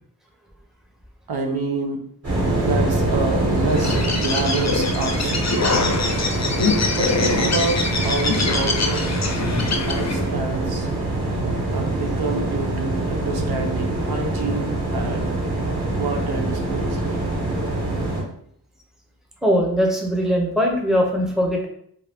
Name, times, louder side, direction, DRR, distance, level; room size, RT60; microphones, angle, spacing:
voice 1, 1.3-2.0 2.6-5.5 6.9-9.1 9.8-10.9 11.7-15.4 15.9-17.2, right 3 dB, 75° right, 3 dB, 0.6 m, -28 dB
sound 1, 2.2-18.2, right 2 dB, 40° right, 1.3 m, -24 dB
Bird, 3.7-10.3, left 3 dB, 45° left, 0.5 m, -24 dB
voice 2, 19.4-21.7, equal, ahead, 0 dB, 0.6 m, -20 dB
2.6 x 2.2 x 3.3 m, 0.67 s
wide cardioid pair, 55°, 38 cm